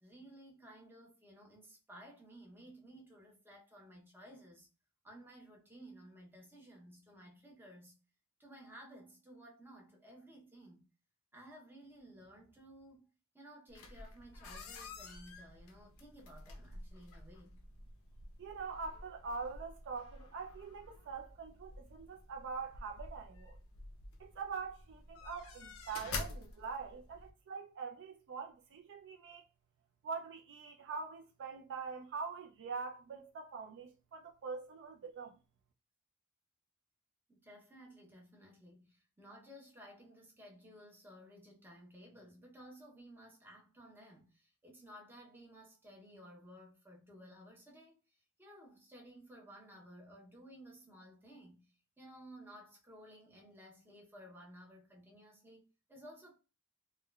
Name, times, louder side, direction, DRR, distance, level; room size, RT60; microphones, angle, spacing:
voice 1, 0.0-4.7 5.0-8.0 8.4-10.9 11.3-17.6 37.3-56.4, equal, 10° right, 0.7 m, -56 dB
sound 1, 13.7-27.3, left 3 dB, 65° left, 0.5 m, -49 dB
voice 2, 18.4-23.6 24.2-29.4 30.0-35.4, right 5 dB, 55° right, 0.4 m, -44 dB
3.5 x 2.2 x 2.2 m
head